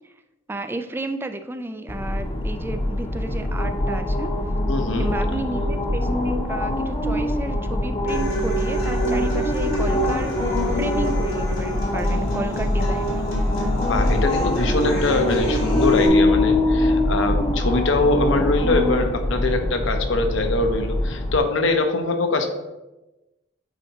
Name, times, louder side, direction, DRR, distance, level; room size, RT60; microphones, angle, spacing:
voice 1, 0.5-4.3 5.0-13.2, right 2 dB, 10° right, 8 dB, 0.3 m, -32 dB
sound 1, 1.9-21.4, left 1 dB, 30° left, 0.8 m, -23 dB
voice 2, 4.7-5.1 13.8-22.5, left 3 dB, 70° left, 5 dB, 0.8 m, -23 dB
Human voice / Acoustic guitar, 8.1-16.1, right 1 dB, 85° left, 1.8 m, -28 dB
9.0 x 4.1 x 2.8 m, 1.0 s
head